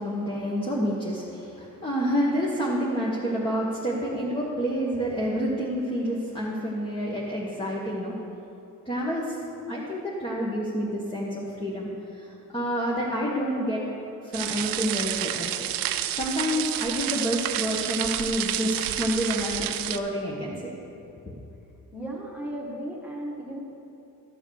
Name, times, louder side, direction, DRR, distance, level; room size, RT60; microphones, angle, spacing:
voice 1, 0.0-8.1 8.8-9.4 9.7-11.9 12.2-12.3 12.5-13.8 14.2-15.5 16.1-20.7, equal, 15° left, -5 dB, 1.6 m, -28 dB
sound 1, 14.3-20.0, right 12 dB, 85° right, 0.6 m, -29 dB
voice 2, 21.9-23.6, right 1 dB, 5° right, -4 dB, 1.9 m, -35 dB
13.5 x 7.0 x 6.7 m, 2.8 s
cardioid pair, 115°, 33 cm